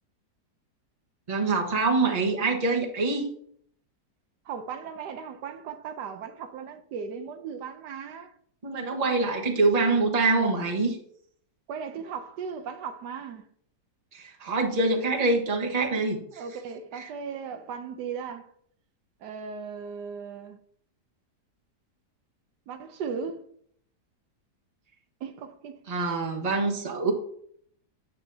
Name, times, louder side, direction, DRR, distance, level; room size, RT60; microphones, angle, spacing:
voice 1, 1.3-3.3 8.6-11.0 14.1-16.2 16.9-17.1 25.9-27.1, right 3 dB, 25° right, 1.2 m, -25 dB
voice 2, 4.5-8.3 11.7-13.5 16.3-18.5 19.2-20.6 22.7-23.4 25.2-25.8, right 6 dB, 80° right, 1.3 m, -37 dB
9.2 x 7.4 x 2.7 m
omnidirectional pair, 1.8 m